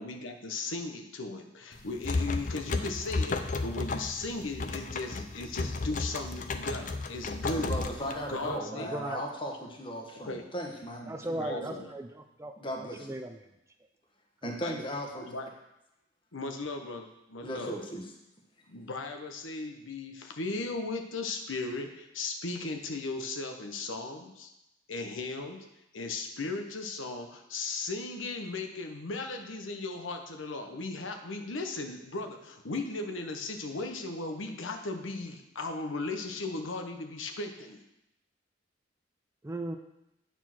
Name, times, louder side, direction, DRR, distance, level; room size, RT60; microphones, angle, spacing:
voice 1, 0.0-7.8 8.3-8.9 10.2-10.4 11.4-11.9 14.6-14.8 15.3-15.5 16.3-17.7 18.7-24.5 24.9-25.6 25.9-37.8, left 3 dB, 85° left, 5 dB, 0.9 m, -37 dB
sound 1, 1.7-8.6, left 3 dB, 40° left, 0.5 m, -33 dB
voice 2, 7.5-11.8 12.6-13.2 14.4-15.3 17.4-18.1, equal, 25° left, 1 dB, 1.2 m, -37 dB
voice 3, 8.7-9.2 11.1-12.5 12.8-13.4 39.4-39.8, right 1 dB, 15° right, 6 dB, 0.4 m, -37 dB
9.2 x 4.4 x 5.9 m, 0.87 s
head